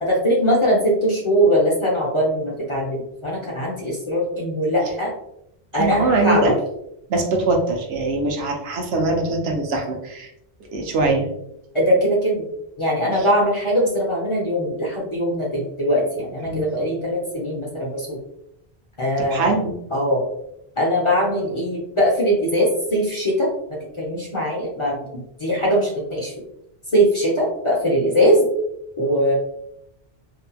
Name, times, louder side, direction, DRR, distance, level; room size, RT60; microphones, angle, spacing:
voice 1, 0.0-5.1 5.7-6.5 11.7-12.4 12.8-18.2 19.0-19.5 19.9-20.3 20.8-23.5 24.0-26.3 26.9-28.5 29.0-29.3, equal, 35° left, -4 dB, 0.5 m, -21 dB
voice 2, 5.7-6.5 7.1-10.3 10.7-11.3 16.4-16.7 19.2-19.7, right 2 dB, 75° right, 2 dB, 0.8 m, -22 dB
2.7 x 2.5 x 2.2 m, 0.78 s
omnidirectional pair, 1.1 m